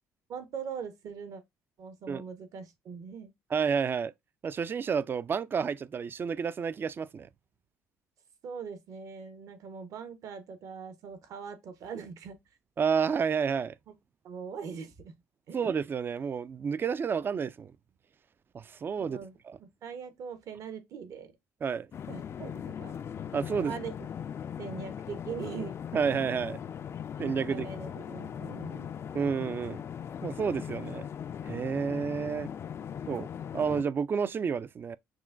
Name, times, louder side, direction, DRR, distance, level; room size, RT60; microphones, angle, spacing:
voice 1, 0.3-1.4 1.8-3.3 8.4-12.4 14.2-15.1 15.5-15.7 19.0-19.3 19.6-21.3 22.1-22.9 23.6-23.9 24.6-25.8 27.5-28.9, right 6 dB, 60° right, 1.0 m, -41 dB
voice 2, 3.5-4.1 4.4-7.3 12.8-13.7 15.5-17.7 18.5-19.2 19.5-19.6 21.6-21.9 23.3-23.8 25.9-26.6 27.2-27.7 29.1-29.8 30.2-31.1 31.4-32.5 33.1-33.3 33.5-35.0, right 6 dB, 35° right, 0.3 m, -30 dB
sound 1, 21.9-33.8, left 8 dB, 45° left, 0.3 m, -39 dB
6.0 x 2.2 x 2.4 m
supercardioid pair, 75°, 6 cm